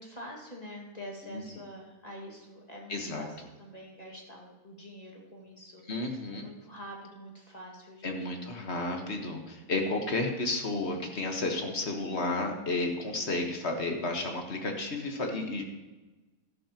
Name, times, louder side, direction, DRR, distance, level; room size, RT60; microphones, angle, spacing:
voice 1, 0.0-5.9 6.3-8.5, equal, 20° left, -2 dB, 1.8 m, -46 dB
voice 2, 2.9-3.3 5.9-6.5 8.0-15.6, left 2 dB, 40° left, 3 dB, 1.3 m, -32 dB
12.5 x 11.5 x 2.9 m, 1.2 s
omnidirectional pair, 2.1 m